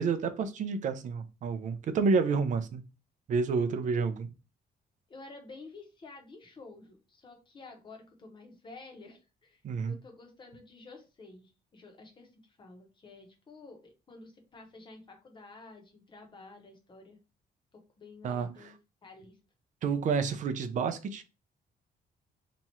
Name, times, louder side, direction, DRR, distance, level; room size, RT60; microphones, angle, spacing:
voice 1, 0.0-2.8 3.3-4.3 9.6-10.0 18.2-18.7 19.8-21.2, right 5 dB, 50° right, 0.5 m, -29 dB
voice 2, 5.1-9.6 9.9-17.2 17.7-18.7 19.0-19.4, left 3 dB, 30° left, 0.9 m, -51 dB
3.0 x 2.4 x 4.1 m
cardioid pair, 165°, 17 cm